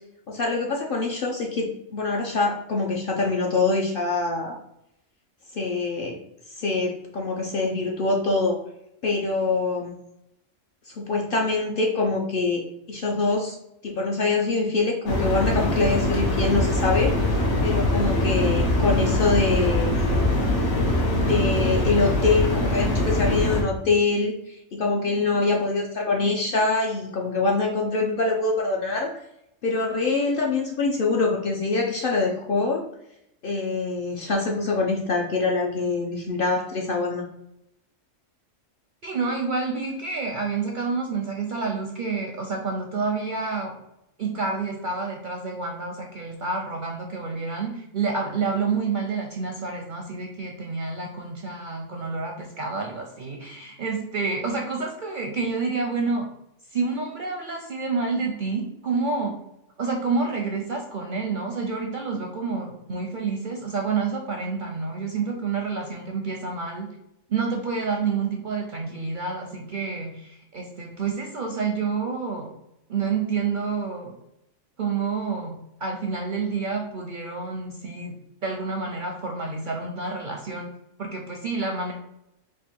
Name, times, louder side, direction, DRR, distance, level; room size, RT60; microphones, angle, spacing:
voice 1, 0.3-4.6 5.5-6.2 6.6-8.6 9.0-9.9 10.9-12.6 12.9-13.6 13.8-17.3 17.6-20.2 21.1-29.1 29.6-32.8 33.4-37.3, left 3 dB, 60° left, 0 dB, 0.6 m, -24 dB
sound 1, 15.1-23.6, left 1 dB, 85° left, 1.4 m, -23 dB
voice 2, 39.0-43.7 44.2-56.3 56.7-59.4 59.8-66.9 67.3-72.5 72.9-74.1 74.8-78.1 78.4-80.7 81.0-81.9, right 4 dB, 55° right, 1 dB, 0.5 m, -28 dB
3.5 x 2.5 x 4.3 m, 0.81 s
omnidirectional pair, 1.3 m